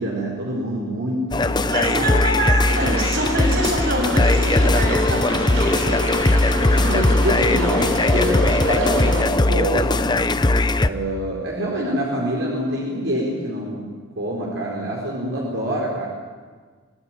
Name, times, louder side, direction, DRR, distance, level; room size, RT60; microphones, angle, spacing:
voice 1, 0.0-2.1 6.7-10.2 10.8-13.9 14.2-16.1, right 1 dB, 65° right, -3 dB, 4.7 m, -26 dB
sound 1, 1.3-10.9, left 2 dB, 20° left, 0.6 m, -19 dB
voice 2, 1.6-6.0, right 1 dB, 50° right, 1 dB, 7.4 m, -25 dB
sound 2, 2.7-9.2, right 1 dB, 90° right, 6.0 m, -28 dB
25.0 x 18.0 x 9.1 m, 1.5 s
head